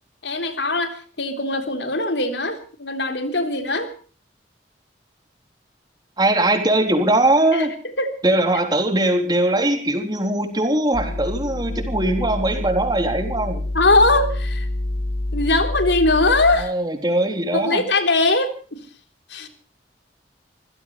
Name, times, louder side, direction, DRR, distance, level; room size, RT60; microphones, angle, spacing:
voice 1, 0.2-3.9 7.5-7.7 8.0-8.1 13.7-14.7 15.3-16.7 17.5-18.8 19.3-19.5, left 2 dB, 85° left, 7 dB, 3.6 m, -21 dB
voice 2, 6.2-7.7 8.2-13.6 16.6-17.8, right 1 dB, 25° right, 5 dB, 3.7 m, -20 dB
sound 1, 10.9-16.6, left 1 dB, 60° left, 1.6 m, -27 dB
26.5 x 16.5 x 3.2 m, 0.39 s
head